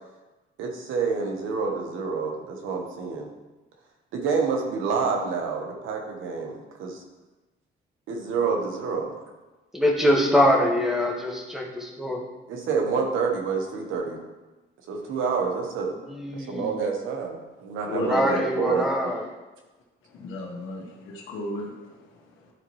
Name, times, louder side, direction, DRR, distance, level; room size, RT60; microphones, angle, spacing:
voice 1, 0.6-3.3 4.1-7.0 8.1-9.2 12.5-14.2 14.9-15.9 16.3-19.2, right 5 dB, 90° right, 2 dB, 1.3 m, -28 dB
voice 2, 9.7-12.2 16.1-16.8 18.0-19.2, equal, ahead, -1 dB, 1.5 m, -23 dB
voice 3, 17.9-18.8 20.0-22.5, left 2 dB, 85° left, -2 dB, 1.4 m, -34 dB
11.5 x 4.1 x 3.2 m, 1.1 s
cardioid pair, 90°, 20 cm